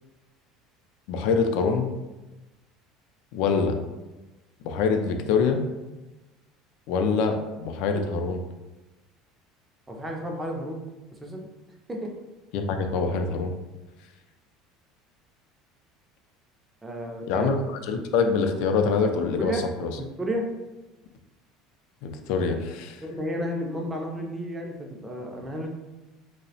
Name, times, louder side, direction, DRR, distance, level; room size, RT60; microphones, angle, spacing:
voice 1, 1.1-1.9 3.3-3.8 4.6-5.6 6.9-8.4 12.5-13.5 17.3-19.9 22.0-23.0, left 5 dB, 70° left, 5 dB, 0.3 m, -25 dB
voice 2, 9.9-10.8 11.2-11.5 11.9-12.1 16.8-17.5 19.4-19.6 20.0-20.5 23.0-25.7, equal, 10° right, 1 dB, 0.4 m, -32 dB
2.7 x 2.0 x 2.7 m, 1.1 s
cardioid pair, 140°, 0 cm